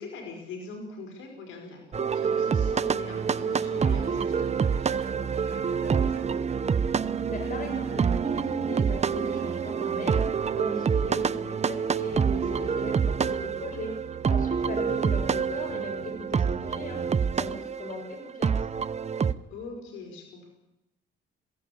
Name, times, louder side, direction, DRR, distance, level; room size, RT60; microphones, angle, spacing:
voice 1, 0.0-6.3 10.9-11.3 14.6-15.0 19.5-20.5, left 3 dB, 85° left, 3 dB, 5.3 m, -43 dB
sound 1, 1.9-19.3, right 6 dB, 35° right, 0.8 m, -27 dB
sound 2, 3.0-17.2, right 8 dB, 55° right, 1.3 m, -45 dB
voice 2, 7.3-10.3 10.5-13.9 14.3-17.0 17.4-18.6, left 1 dB, 45° left, 4 dB, 7.2 m, -38 dB
22.0 x 17.0 x 8.7 m, 0.90 s
cardioid pair, 90°, 20 cm